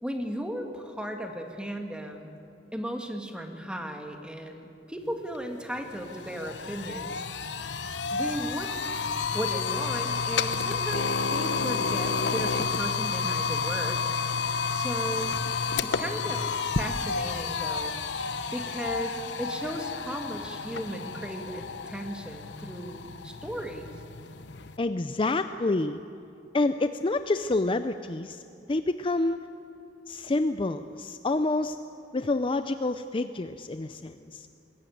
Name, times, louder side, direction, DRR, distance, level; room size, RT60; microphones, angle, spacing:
voice 1, 0.0-2.3 2.7-7.7 8.1-8.7 9.3-14.0 14.7-15.4 15.8-16.4 16.8-17.9 18.5-23.9, equal, 5° right, 4 dB, 1.8 m, -36 dB
sound 1, 5.3-5.4 5.8-24.8, left 5 dB, 75° left, 0.9 m, -31 dB
voice 2, 24.8-26.0 26.5-28.4 28.7-29.5 30.1-31.8 32.1-34.5, left 2 dB, 30° left, 10 dB, 0.5 m, -28 dB
21.5 x 17.0 x 9.3 m, 2.7 s
head